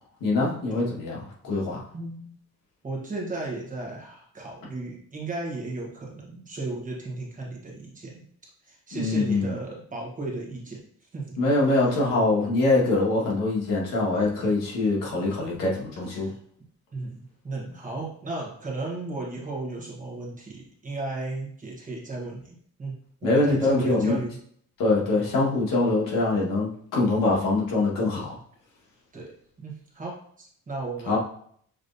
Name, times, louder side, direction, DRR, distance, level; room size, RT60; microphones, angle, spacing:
voice 1, 0.2-1.2 1.4-1.8 8.9-9.5 11.4-16.3 23.2-24.2 24.8-28.4 31.1-31.2, left 2 dB, 80° left, -4 dB, 1.6 m, -23 dB
voice 2, 1.9-2.3 2.8-8.2 8.6-10.8 11.1-11.4 16.1-16.3 16.9-22.9 23.2-24.4 29.1-31.2, right 2 dB, 25° right, -3 dB, 1.1 m, -35 dB
6.5 x 3.1 x 2.7 m, 0.62 s
cardioid pair, 170°, 33 cm